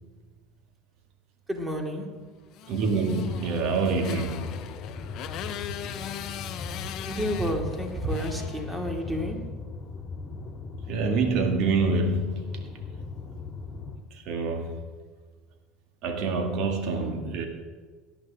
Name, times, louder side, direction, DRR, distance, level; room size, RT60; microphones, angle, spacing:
voice 1, 1.5-2.1 7.0-9.4, equal, 15° right, 3 dB, 2.5 m, -30 dB
Motorcycle, 2.5-9.2, left 10 dB, 50° left, 0.8 m, -40 dB
voice 2, 2.7-4.7 10.9-12.6 14.1-14.8 16.0-17.5, right 3 dB, 55° right, 4 dB, 2.0 m, -26 dB
sound 1, 3.3-14.0, left 4 dB, 35° left, 1.9 m, -39 dB
18.0 x 11.0 x 3.6 m, 1.5 s
hypercardioid pair, 70°, 0 cm